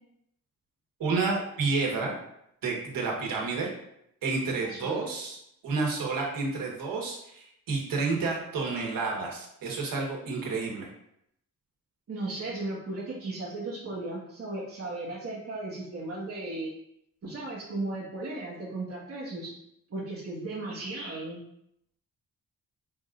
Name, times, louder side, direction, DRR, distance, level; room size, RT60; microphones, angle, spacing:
voice 1, 1.0-2.1 2.6-3.7 4.2-5.4 5.6-10.9, right 4 dB, 90° right, -1 dB, 1.3 m, -30 dB
voice 2, 4.7-5.1 12.1-16.7 17.2-19.5 19.9-21.4, right 2 dB, 45° right, -7 dB, 1.5 m, -36 dB
5.5 x 3.8 x 2.5 m, 0.75 s
wide cardioid pair, 155°, 33 cm